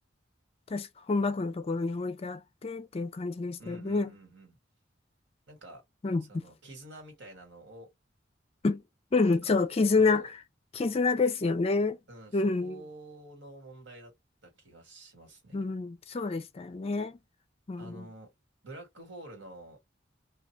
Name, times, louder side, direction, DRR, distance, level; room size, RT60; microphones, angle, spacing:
voice 1, 0.7-4.1 6.0-6.4 8.6-8.8 9.1-10.2 10.7-12.0 12.3-12.8 15.5-17.2 17.7-18.1, left 3 dB, 30° left, 0.4 m, -28 dB
voice 2, 3.6-4.6 5.5-5.8 6.3-7.9 9.2-9.5 10.0-10.3 12.1-14.1 14.4-15.7 17.8-18.3 18.6-19.8, right 2 dB, 70° right, 1.8 m, -48 dB
2.7 x 2.4 x 2.9 m
head